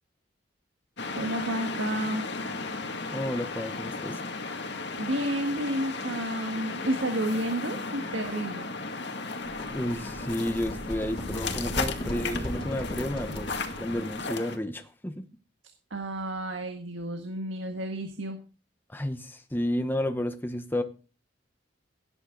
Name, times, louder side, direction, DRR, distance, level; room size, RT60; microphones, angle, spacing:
sound 1, 1.0-14.6, left 3 dB, 65° left, 2.1 m, -35 dB
voice 1, 1.1-2.3 5.0-8.7 15.9-18.4, right 1 dB, 80° right, 5 dB, 1.7 m, -31 dB
voice 2, 3.1-4.2 9.7-13.5 13.8-15.2 18.9-20.8, left 1 dB, 10° left, 7 dB, 0.9 m, -31 dB
sound 2, 9.4-14.3, left 1 dB, 30° left, 2.9 m, -37 dB
17.0 x 9.9 x 3.9 m, 0.35 s
head